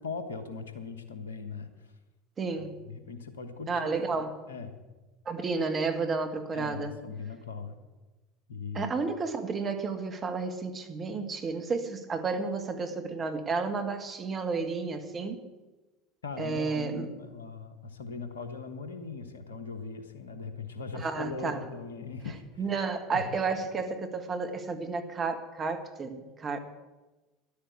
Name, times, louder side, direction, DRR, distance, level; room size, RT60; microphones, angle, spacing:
voice 1, 0.0-1.9 2.6-4.8 6.5-7.8 8.5-8.9 16.2-22.6 23.1-23.2, left 4 dB, 80° left, 9 dB, 1.3 m, -40 dB
voice 2, 2.4-2.8 3.7-4.4 5.2-6.9 8.7-15.4 16.4-17.1 20.9-21.6 22.6-26.6, right 4 dB, 30° right, 6 dB, 1.7 m, -32 dB
11.5 x 8.4 x 8.4 m, 1.1 s
figure-of-eight pair, 70°, 0 cm